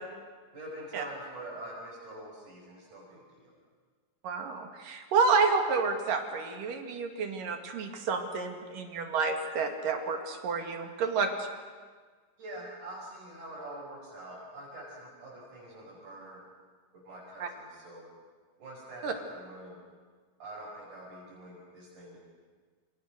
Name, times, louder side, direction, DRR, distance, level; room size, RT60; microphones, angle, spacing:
voice 1, 0.5-3.6 11.0-11.1 12.4-16.4 16.9-18.1 18.6-19.8 20.4-22.2, right 1 dB, 65° right, -6 dB, 7.1 m, -45 dB
voice 2, 4.2-11.3 17.4-17.5 19.0-19.1, right 4 dB, 80° right, 4 dB, 3.9 m, -29 dB
28.5 x 27.5 x 6.5 m, 1.5 s
omnidirectional pair, 3.8 m